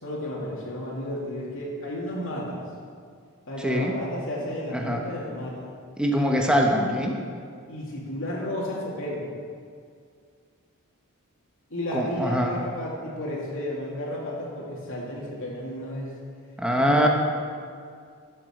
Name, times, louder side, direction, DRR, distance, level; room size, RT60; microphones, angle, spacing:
voice 1, 0.0-2.6 3.5-5.7 7.7-9.3 11.7-16.1 16.8-17.1, left 1 dB, 60° left, -4 dB, 2.7 m, -32 dB
voice 2, 3.6-3.9 4.7-5.0 6.0-7.2 11.9-12.5 16.6-17.1, equal, 5° right, 0 dB, 1.3 m, -23 dB
13.0 x 7.5 x 6.7 m, 2.2 s
head